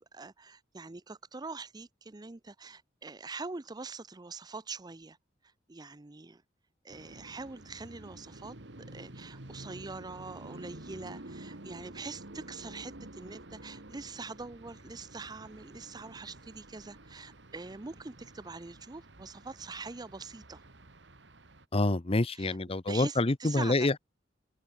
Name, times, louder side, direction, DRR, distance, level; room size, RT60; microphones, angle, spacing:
voice 1, 0.0-5.2 5.7-6.4 6.8-8.5 8.9-20.6 22.3-22.6 22.9-23.9, right 3 dB, 20° right, 0.6 m, -44 dB
sound 1, 6.9-21.6, right 1 dB, 75° right, 2.2 m, -50 dB
voice 2, 21.7-24.0, left 2 dB, 30° left, 0.8 m, -27 dB
open air
head